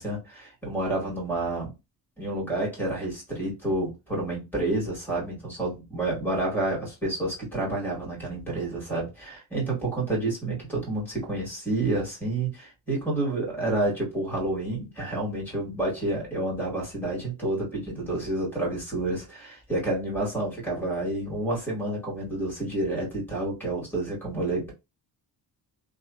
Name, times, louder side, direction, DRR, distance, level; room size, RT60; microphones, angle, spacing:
voice 1, 0.0-1.7 2.2-24.7, right 2 dB, 5° left, 1.7 m, -29 dB
2.9 x 2.5 x 2.3 m
wide cardioid pair, 155°, 42 cm